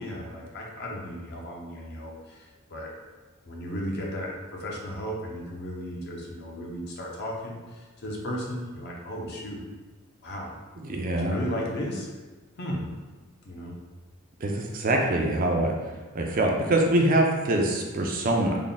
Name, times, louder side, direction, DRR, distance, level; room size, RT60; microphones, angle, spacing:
voice 1, 0.0-2.9 3.5-9.6 10.2-10.6 11.1-12.1 12.6-12.9 13.4-13.7, equal, 50° left, -1 dB, 0.6 m, -35 dB
voice 2, 10.8-11.4 14.4-15.7 16.1-18.6, right 1 dB, 40° right, 1 dB, 0.4 m, -24 dB
3.5 x 2.2 x 3.9 m, 1.3 s
head